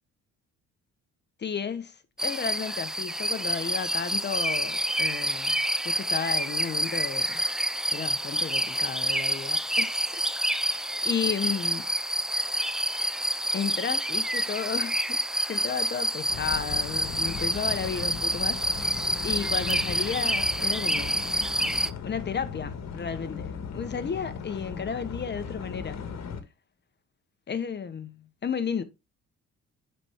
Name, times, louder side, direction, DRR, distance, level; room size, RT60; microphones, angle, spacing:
voice 1, 1.4-7.4 7.9-10.2 10.6-11.9 13.5-15.2 15.5-19.0 19.2-21.4 22.0-26.0 27.5-28.8, left 6 dB, 35° left, 1.0 m, -33 dB
sound 1, 2.2-21.9, right 1 dB, ahead, 0.3 m, -28 dB
sound 2, 16.3-26.4, left 6 dB, 60° left, 1.4 m, -37 dB
8.1 x 4.5 x 3.5 m
cardioid pair, 90°, 30 cm